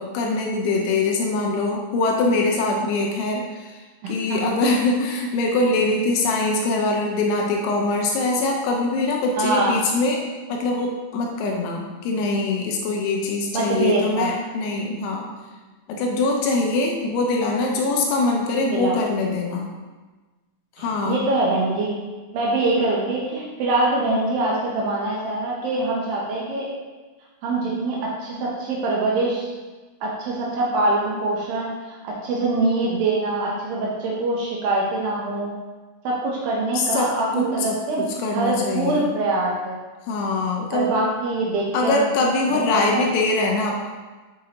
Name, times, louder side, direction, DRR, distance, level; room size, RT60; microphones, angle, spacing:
voice 1, 0.0-10.2 10.5-15.3 15.9-19.7 20.8-21.2 36.7-39.1 40.1-40.9 41.7-43.9, left 2 dB, 80° left, 1 dB, 2.6 m, -23 dB
voice 2, 4.0-4.4 9.4-9.8 13.5-14.3 18.7-19.0 20.8-22.0 22.3-26.7 27.4-29.5 30.0-35.6 36.0-38.1 38.3-39.8 40.7-42.0 42.5-43.1, right 2 dB, 80° right, -4 dB, 2.1 m, -24 dB
6.2 x 5.7 x 2.9 m, 1.3 s
omnidirectional pair, 5.1 m